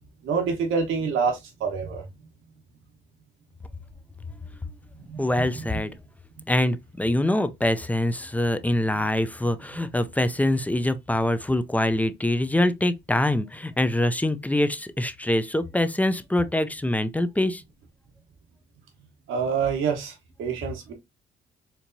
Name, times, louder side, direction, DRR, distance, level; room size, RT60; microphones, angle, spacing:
voice 1, 0.2-2.0 5.0-5.7 19.3-20.9, right 5 dB, 85° right, 1.1 m, -27 dB
voice 2, 5.2-5.9 6.5-17.6, left 1 dB, 10° left, 0.4 m, -24 dB
4.4 x 2.8 x 2.6 m
cardioid pair, 90°, 20 cm